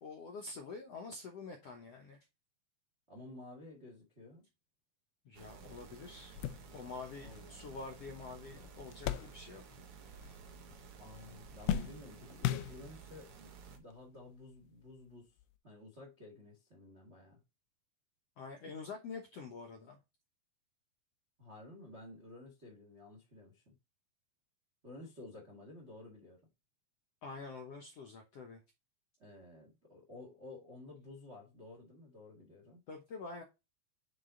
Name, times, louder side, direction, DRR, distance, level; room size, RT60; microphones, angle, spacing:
voice 1, 0.0-2.2 5.2-6.4 6.7-9.6 18.4-20.0 27.2-28.6 32.9-33.4, left 4 dB, 70° left, 1.5 m, -47 dB
voice 2, 3.1-4.5 7.2-7.8 11.0-15.3 15.6-17.4 21.4-23.8 24.8-26.4 29.2-32.8, left 2 dB, 40° right, 0.9 m, -53 dB
sound 1, 5.3-13.8, right 6 dB, 65° right, 1.4 m, -54 dB
sound 2, 5.6-5.7 6.1-9.9 10.1-10.9 11.2-13.2 14.0-14.1 15.4-15.5, left 11 dB, 85° left, 2.6 m, -39 dB
7.6 x 4.0 x 3.8 m
omnidirectional pair, 4.2 m